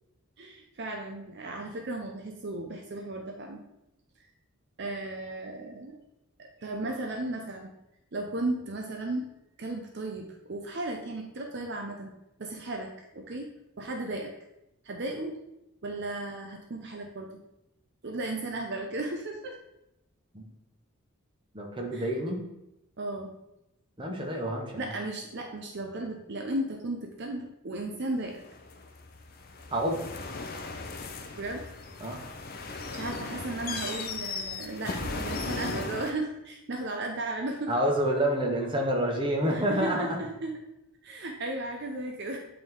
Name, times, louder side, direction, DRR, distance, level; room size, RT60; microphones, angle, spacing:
voice 1, 0.4-3.6 4.8-6.0 6.4-7.7 8.1-9.3 9.6-12.1 12.4-13.5 13.8-14.3 14.8-15.4 15.8-17.3 18.0-19.6 21.9-22.0 23.0-23.3 24.8-28.4 31.4-31.6 32.9-37.7 39.5-40.5 41.0-42.4, right 2 dB, 50° right, 2 dB, 0.6 m, -35 dB
voice 2, 21.5-22.4 24.0-24.9 29.7-30.0 32.0-32.2 37.7-40.2, right 1 dB, 20° right, 1 dB, 1.0 m, -28 dB
sound 1, 28.3-36.1, left 3 dB, 40° left, 0.6 m, -37 dB
8.6 x 3.6 x 3.7 m, 0.88 s
head